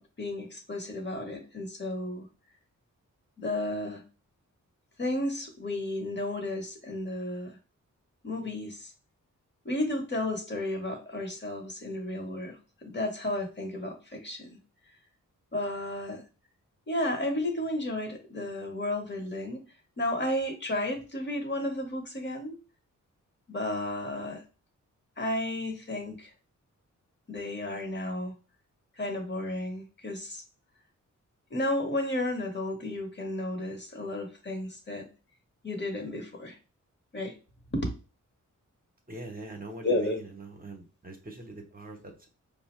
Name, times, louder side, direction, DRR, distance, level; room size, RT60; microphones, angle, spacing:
voice 1, 0.0-2.3 3.4-4.0 5.0-7.6 8.2-8.9 9.6-14.5 15.5-16.2 16.9-19.6 20.0-22.6 23.5-24.4 25.2-26.3 27.3-28.3 29.0-30.4 31.5-35.0 35.6-36.6 37.1-37.3 37.7-37.9 39.8-40.2, left 1 dB, 35° left, 3 dB, 1.0 m, -33 dB
voice 2, 39.1-42.3, right 2 dB, 30° right, 3 dB, 0.7 m, -43 dB
4.7 x 2.0 x 3.0 m, 0.32 s
wide cardioid pair, 90°, 32 cm